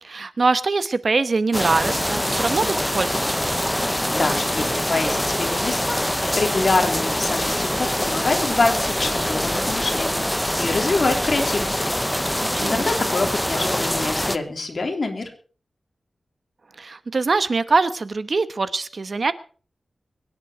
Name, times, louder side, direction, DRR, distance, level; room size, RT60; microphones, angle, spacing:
voice 1, 0.0-3.3 12.5-12.8 16.8-19.3, right 3 dB, 50° right, 13 dB, 1.1 m, -23 dB
sound 1, 1.5-14.4, equal, 5° left, 0.8 m, -24 dB
voice 2, 4.1-11.8 12.6-15.3, left 3 dB, 50° left, 3 dB, 3.4 m, -25 dB
23.5 x 10.5 x 4.4 m, 0.40 s
wide cardioid pair, 105°, 0 cm